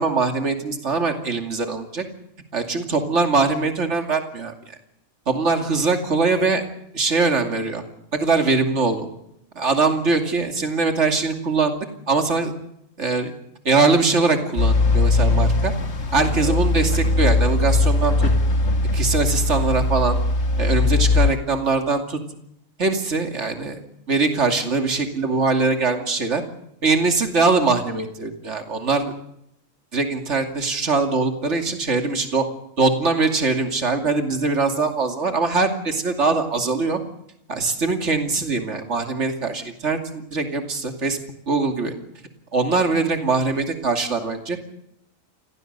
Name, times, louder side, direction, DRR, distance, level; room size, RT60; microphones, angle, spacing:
voice 1, 0.0-2.0 2.5-4.5 5.3-6.6 6.9-7.8 8.1-9.1 9.5-11.7 12.1-12.5 13.0-13.3 13.6-15.7 16.1-18.3 18.9-20.2 20.6-22.2 22.8-23.8 24.1-26.4 26.8-29.1 29.9-32.4 32.8-37.0 37.5-41.2 41.5-41.9 42.5-44.6, right 4 dB, 60° right, 5 dB, 2.9 m, -22 dB
sound 1, 14.6-21.3, left 2 dB, 60° left, 1.9 m, -20 dB
28.5 x 22.0 x 6.8 m, 0.78 s
omnidirectional pair, 1.3 m